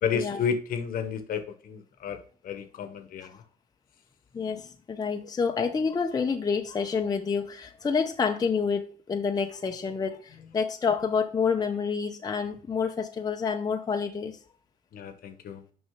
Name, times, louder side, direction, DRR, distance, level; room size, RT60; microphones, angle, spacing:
voice 1, 0.0-3.4 14.9-15.6, left 7 dB, 55° left, 9 dB, 1.0 m, -32 dB
voice 2, 4.3-14.4, left 5 dB, 25° left, 5 dB, 0.6 m, -28 dB
6.4 x 5.2 x 3.6 m, 0.43 s
cardioid pair, 110°, 17 cm